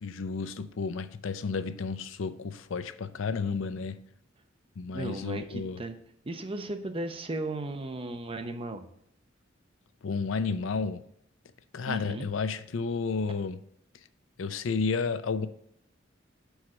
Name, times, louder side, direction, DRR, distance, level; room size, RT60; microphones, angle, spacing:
voice 1, 0.0-4.0 4.8-5.8 10.0-11.0 11.7-13.6 14.4-15.5, left 5 dB, 80° left, 0.5 m, -32 dB
voice 2, 4.9-5.9 6.2-8.8 11.9-12.3, right 2 dB, 30° right, 0.6 m, -35 dB
6.2 x 4.7 x 4.2 m
head